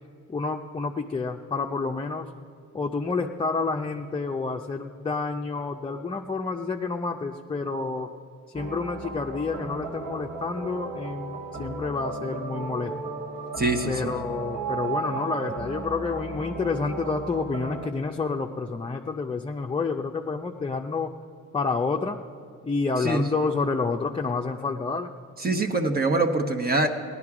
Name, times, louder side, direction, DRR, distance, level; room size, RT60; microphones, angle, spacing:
voice 1, 0.3-2.3 2.7-8.1 8.5-12.9 13.9-21.1 21.5-22.2 22.6-25.1, left 4 dB, 15° left, 2 dB, 0.5 m, -29 dB
sound 1, 8.5-17.9, right 3 dB, 65° right, 1.8 m, -35 dB
voice 2, 13.6-14.1 23.0-23.3 25.4-26.9, right 2 dB, 30° right, 4 dB, 1.1 m, -24 dB
17.0 x 11.0 x 4.9 m, 2.3 s
cardioid pair, 90°, 30 cm